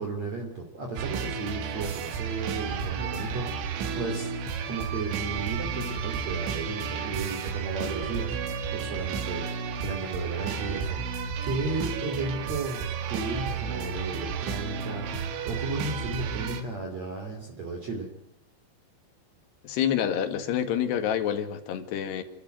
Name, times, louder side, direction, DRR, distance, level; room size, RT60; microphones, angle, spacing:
voice 1, 0.0-4.3 4.6-8.4 8.7-18.1, right 3 dB, 40° right, 3.6 m, -34 dB
sound 1, 1.0-16.6, right 6 dB, 85° right, 4.4 m, -32 dB
voice 2, 19.6-22.2, left 9 dB, 70° left, 4.0 m, -27 dB
30.0 x 13.5 x 9.2 m
omnidirectional pair, 5.2 m